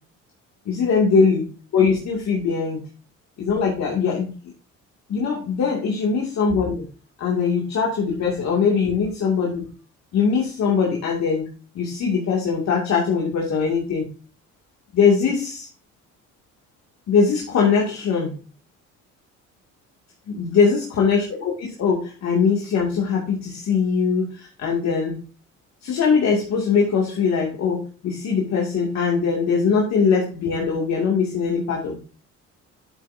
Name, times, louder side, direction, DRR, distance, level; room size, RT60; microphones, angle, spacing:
voice 1, 0.7-1.5 1.7-2.8 3.4-4.3 5.1-6.8 7.2-9.7 10.1-11.5 11.7-14.1 14.9-15.7 17.1-18.4 20.3-25.3 25.8-32.0, left 5 dB, 60° left, -2 dB, 2.5 m, -21 dB
9.7 x 7.8 x 2.7 m, 0.36 s
cardioid pair, 105°, 31 cm